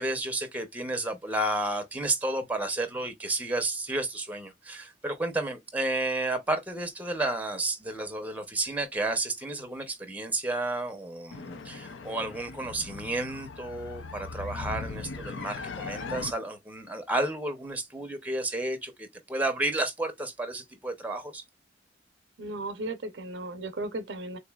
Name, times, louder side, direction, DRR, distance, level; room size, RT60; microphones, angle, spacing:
voice 1, 0.0-21.4, right 2 dB, 10° right, 0.7 m, -31 dB
sound 1, 11.3-16.3, left 4 dB, 85° left, 0.5 m, -39 dB
voice 2, 22.4-24.4, right 2 dB, 70° right, 0.7 m, -35 dB
3.9 x 3.0 x 2.3 m
head